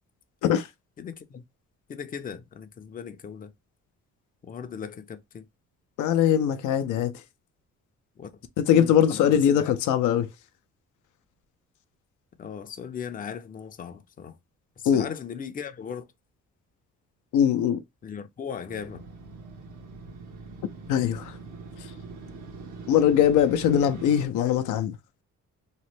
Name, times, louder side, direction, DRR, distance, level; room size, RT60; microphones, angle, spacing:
voice 1, 1.0-1.4 1.9-3.5 4.4-5.5 8.2-8.3 8.7-9.7 12.4-14.4 14.8-16.1 18.0-19.0, left 7 dB, 30° left, 0.5 m, -38 dB
voice 2, 6.0-7.2 8.6-10.3 14.9-15.1 17.3-17.8 20.9-21.4 21.8-21.9 22.9-25.0, left 9 dB, 80° left, 0.5 m, -21 dB
Motorcycle, 18.7-24.3, right 4 dB, 75° right, 1.1 m, -42 dB
3.0 x 2.1 x 3.0 m
cardioid pair, 90°, 30 cm